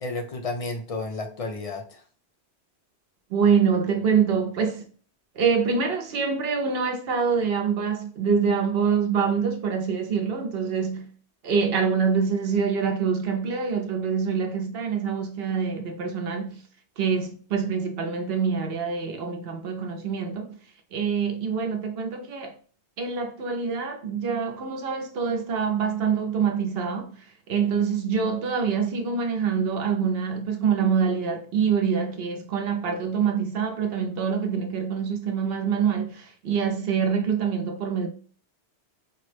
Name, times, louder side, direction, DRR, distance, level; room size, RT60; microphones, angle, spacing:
voice 1, 0.0-2.0, left 3 dB, 50° left, 0.4 m, -32 dB
voice 2, 3.3-4.8 5.3-11.1 11.4-16.6 17.0-20.6 20.9-22.6 23.0-38.1, right 6 dB, 65° right, 0.8 m, -25 dB
4.3 x 2.0 x 3.2 m
omnidirectional pair, 1.1 m